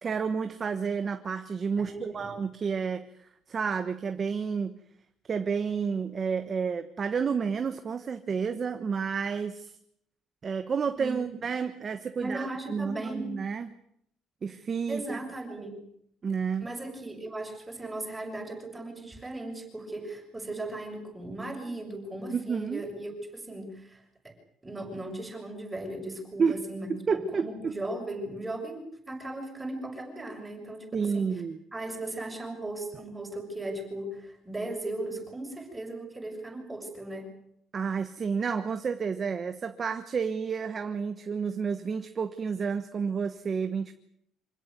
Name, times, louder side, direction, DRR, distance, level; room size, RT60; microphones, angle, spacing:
voice 1, 0.0-4.8 5.3-9.7 10.4-13.7 14.4-15.2 16.2-16.7 22.3-22.8 26.4-26.6 26.9-27.7 30.9-31.6 37.7-43.9, right 6 dB, 30° right, 8 dB, 1.2 m, -30 dB
voice 2, 1.8-2.3 11.0-11.3 12.2-13.3 14.9-15.7 16.6-24.3 24.6-31.4 31.7-37.3, right 1 dB, 10° right, 1 dB, 6.8 m, -37 dB
26.5 x 17.0 x 9.4 m, 0.74 s
cardioid pair, 165°, 0 cm